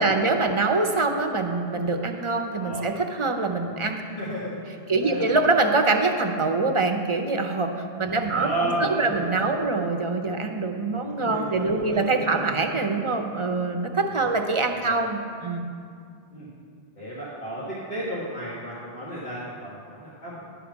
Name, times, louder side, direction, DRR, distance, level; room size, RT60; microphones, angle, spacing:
voice 1, 0.0-4.0 4.9-7.7 8.0-15.7, right 3 dB, 35° right, 4 dB, 0.6 m, -24 dB
voice 2, 2.5-2.9 4.2-4.6 5.0-5.4 8.0-9.6 11.0-12.5 14.8-14.9 16.3-16.5 17.0-20.5, right 1 dB, 75° left, -10 dB, 2.0 m, -33 dB
11.5 x 4.9 x 7.1 m, 2.3 s
omnidirectional pair, 1.1 m